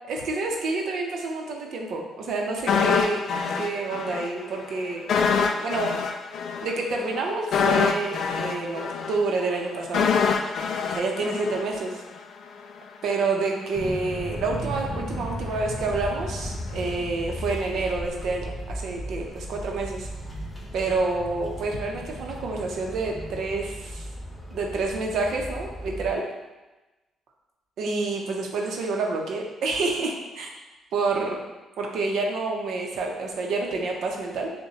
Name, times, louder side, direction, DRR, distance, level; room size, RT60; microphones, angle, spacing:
voice 1, 0.1-3.2 3.6-5.0 5.6-6.0 6.6-10.1 10.9-12.0 13.0-20.1 20.7-24.0 24.5-26.2 27.8-30.5 30.9-31.4 31.8-34.5, right 3 dB, 75° right, 1 dB, 0.7 m, -28 dB
sound 1, 2.7-4.3 4.6-4.7 5.1-12.2 12.5-12.6, left 6 dB, 65° left, 0.3 m, -25 dB
sound 2, 13.7-26.1, equal, 15° left, 1.1 m, -36 dB
6.6 x 2.2 x 2.8 m, 1.1 s
cardioid pair, 90°, 0 cm